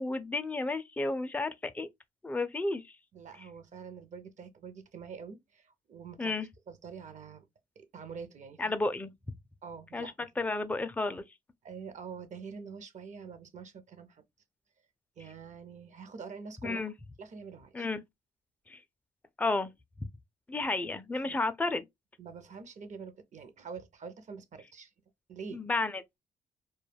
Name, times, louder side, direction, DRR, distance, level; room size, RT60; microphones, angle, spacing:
voice 1, 0.0-1.9 2.2-2.8 6.2-6.5 8.6-9.1 9.9-10.1 10.4-11.2 16.6-16.9 17.7-18.0 18.7-18.8 19.4-19.7 20.5-21.9 25.5-26.0, left 3 dB, 10° left, 0.4 m, -32 dB
voice 2, 3.1-6.4 6.7-7.4 7.8-8.7 9.6-10.5 11.6-14.2 15.2-16.8 17.2-17.9 21.2-21.4 22.2-24.9 25.3-25.6, right 5 dB, 50° right, 0.6 m, -46 dB
2.2 x 2.1 x 3.3 m
cardioid pair, 70°, 16 cm